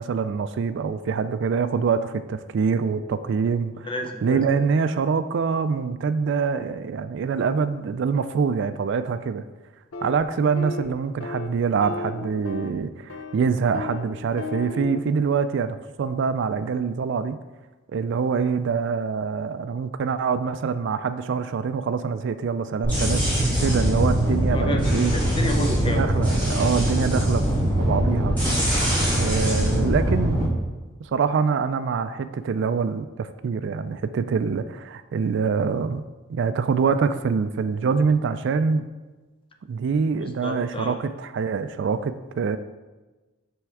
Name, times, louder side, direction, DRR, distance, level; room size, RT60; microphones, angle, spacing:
voice 1, 0.0-3.9 4.2-9.4 10.0-17.4 17.9-23.2 23.6-25.1 25.8-27.5 27.8-28.4 29.1-30.6 31.0-36.0 36.3-38.8 39.7-42.6, right 5 dB, 60° right, 12 dB, 0.3 m, -25 dB
voice 2, 3.9-4.4 24.5-26.0 40.4-41.0, left 1 dB, 25° left, 4 dB, 0.6 m, -30 dB
sound 1, 9.9-10.2 10.6-10.9 11.2-11.5 11.8-12.8 13.1-13.4 13.7-14.0 14.4-15.0, left 3 dB, 80° left, 0.5 m, -34 dB
sound 2, 22.8-30.5, equal, 10° left, 2.2 m, -22 dB
7.6 x 3.5 x 4.7 m, 1.2 s
head